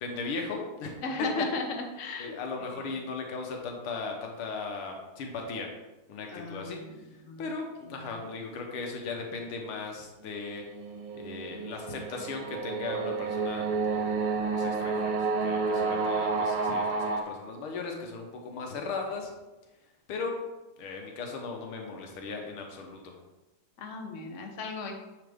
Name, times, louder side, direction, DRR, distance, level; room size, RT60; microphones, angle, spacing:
voice 1, 0.0-1.3 2.2-5.7 6.1-6.8 7.4-10.6 11.1-14.1 14.5-19.3 20.1-20.4 20.8-23.2, left 4 dB, 90° left, 2 dB, 1.8 m, -37 dB
voice 2, 1.0-2.3 2.6-2.9 6.3-7.0 7.2-7.5 8.0-8.1 15.8-16.2 23.8-24.9, left 3 dB, 50° left, 4 dB, 0.9 m, -36 dB
sound 1, 10.5-17.2, right 4 dB, 65° right, 1.5 m, -30 dB
9.5 x 4.2 x 3.5 m, 1.1 s
omnidirectional pair, 2.3 m